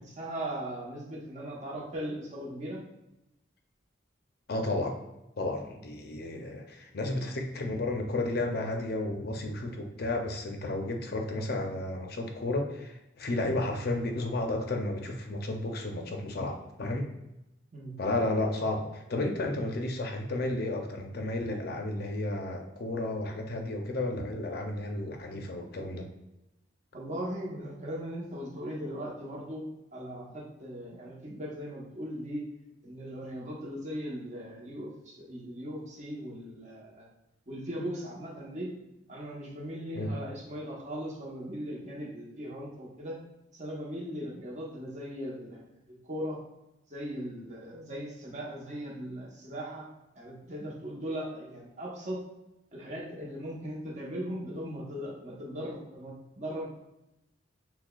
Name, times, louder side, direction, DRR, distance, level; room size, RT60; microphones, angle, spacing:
voice 1, 0.2-2.8 17.7-17.9 26.9-29.6 29.9-32.4 32.8-37.0 37.5-38.7 39.1-43.2 43.5-45.6 46.0-46.4 46.9-49.8 50.1-52.2 52.7-56.6, equal, 40° right, -3 dB, 1.0 m, -38 dB
voice 2, 4.5-5.0 5.4-17.1 18.0-26.1 39.9-40.1, left 2 dB, 55° left, 3 dB, 0.6 m, -32 dB
6.0 x 2.3 x 2.3 m, 0.92 s
head